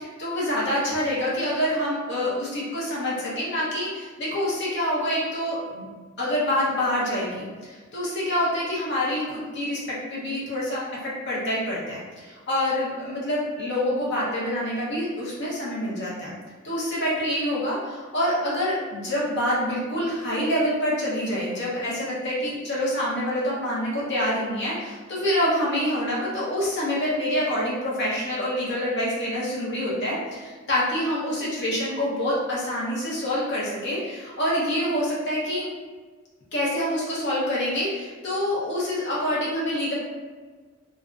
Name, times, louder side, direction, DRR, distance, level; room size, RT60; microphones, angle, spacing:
voice 1, 0.0-5.9 6.2-9.8 10.1-10.8 11.3-16.3 16.6-35.7 36.5-39.9, left 1 dB, 55° left, -7 dB, 0.9 m, -26 dB
2.5 x 2.3 x 2.4 m, 1.4 s
head